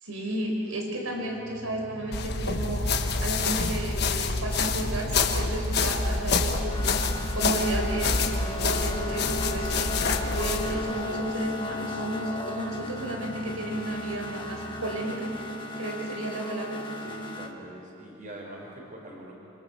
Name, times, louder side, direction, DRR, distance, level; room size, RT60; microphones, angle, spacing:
voice 1, 0.0-2.8 3.2-7.0 7.3-15.3 15.8-16.9, right 1 dB, 85° right, 0 dB, 4.9 m, -32 dB
sound 1, 0.9-15.6, left 1 dB, 70° left, 2.4 m, -43 dB
sound 2, 2.1-10.8, left 4 dB, 50° left, 1.5 m, -27 dB
sound 3, 6.4-17.5, left 2 dB, 25° left, 1.6 m, -36 dB
voice 2, 17.0-19.3, right 1 dB, 40° right, -1 dB, 5.2 m, -43 dB
27.5 x 26.5 x 7.2 m, 3.0 s
head